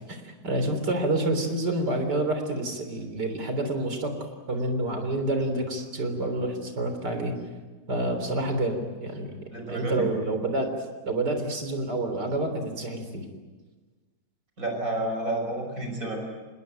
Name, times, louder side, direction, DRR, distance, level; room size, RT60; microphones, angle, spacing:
voice 1, 0.0-4.1 4.5-7.3 7.9-9.4 9.7-10.7 11.0-13.3, right 2 dB, 60° right, 6 dB, 4.2 m, -28 dB
voice 2, 9.5-10.1 14.6-16.2, right 1 dB, 45° right, 2 dB, 6.5 m, -30 dB
27.0 x 20.5 x 8.9 m, 1.3 s
omnidirectional pair, 2.0 m